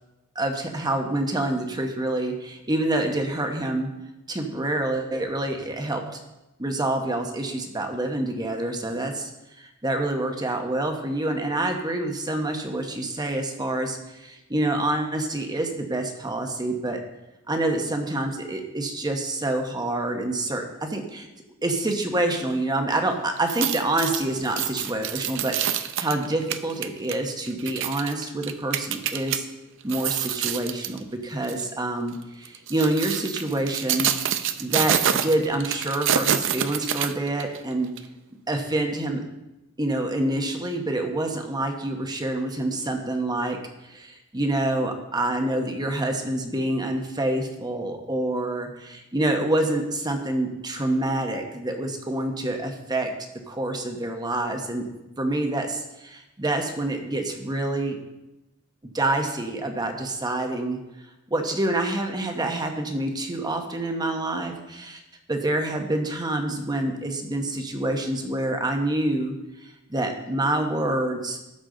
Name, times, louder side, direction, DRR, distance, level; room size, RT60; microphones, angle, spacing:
voice 1, 0.3-3.9 4.3-6.2 6.6-9.3 9.6-17.0 17.5-21.3 21.6-29.5 29.8-34.1 34.6-37.9 38.5-39.2 39.8-43.6 43.8-53.1 53.5-54.9 55.2-58.0 58.9-60.8 61.3-65.0 65.3-69.3 69.9-71.4, right 1 dB, 20° right, 4 dB, 1.0 m, -27 dB
sound 1, 23.4-29.4 29.8-31.0 31.4-31.6 32.4-37.6 38.0-38.1, right 9 dB, 65° right, 0.6 m, -27 dB
12.5 x 7.0 x 3.9 m, 0.97 s
head